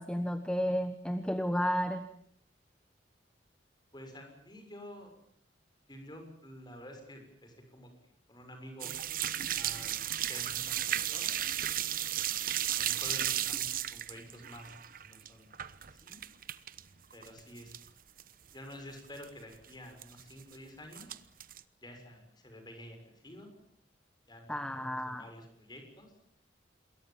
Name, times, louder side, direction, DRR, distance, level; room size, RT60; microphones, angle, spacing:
voice 1, 0.0-2.1 24.5-25.2, equal, 5° left, 9 dB, 1.2 m, -32 dB
voice 2, 3.9-5.1 5.9-7.9 8.3-8.9 9.5-11.4 12.7-15.5 15.9-16.2 17.1-17.7 18.5-21.1 21.8-23.6 24.3-26.1, left 1 dB, 25° left, 5 dB, 6.7 m, -50 dB
sound 1, 8.8-16.8 17.1-17.9 18.2-18.3 18.7-18.8 19.0-19.2 20.0-20.5 20.9-21.6, right 11 dB, 50° right, 1.1 m, -34 dB
27.5 x 22.0 x 7.5 m, 0.65 s
head